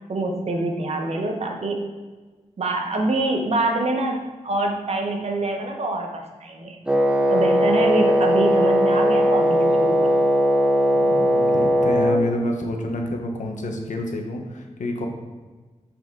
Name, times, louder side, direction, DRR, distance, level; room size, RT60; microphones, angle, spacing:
voice 1, 0.1-1.8 2.6-6.8 7.3-10.2, right 2 dB, 55° right, 2 dB, 1.0 m, -25 dB
Wind instrument woodwind instrument, 6.9-12.2, equal, 10° right, 0.6 m, -19 dB
voice 2, 11.0-15.1, left 1 dB, 75° left, 2 dB, 1.0 m, -28 dB
5.9 x 5.7 x 3.8 m, 1.3 s
wide cardioid pair, 125°, 13 cm